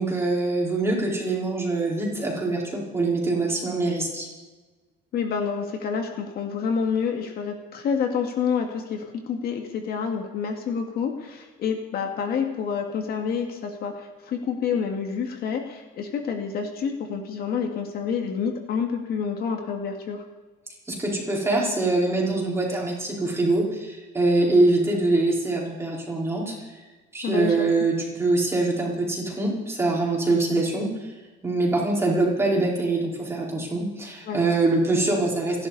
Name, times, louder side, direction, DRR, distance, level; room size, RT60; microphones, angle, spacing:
voice 1, 0.0-4.3 20.9-26.6 27.1-31.1 31.4-35.7, right 2 dB, 15° right, -3 dB, 4.5 m, -24 dB
voice 2, 5.1-20.2 27.2-27.6 34.3-34.4, left 6 dB, 50° left, 4 dB, 2.0 m, -28 dB
29.0 x 11.5 x 4.2 m, 1.3 s
cardioid pair, 155°, 20 cm